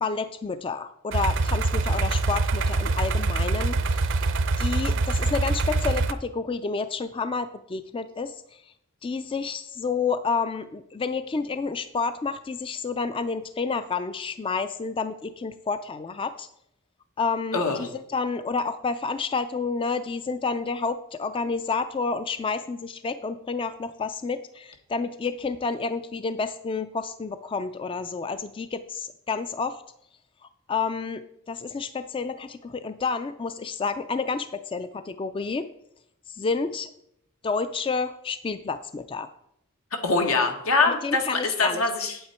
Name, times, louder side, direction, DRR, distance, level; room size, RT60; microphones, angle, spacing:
voice 1, 0.0-4.3 4.6-8.6 9.0-16.5 17.2-29.8 30.7-35.7 36.3-36.9 37.4-39.3 41.0-41.8, left 4 dB, 25° left, 11 dB, 0.3 m, -30 dB
sound 1, 1.1-6.1, right 3 dB, 60° right, 0.6 m, -24 dB
voice 2, 17.5-17.9 40.0-42.2, left 3 dB, 85° left, 4 dB, 1.6 m, -23 dB
8.7 x 8.2 x 4.4 m, 0.75 s
head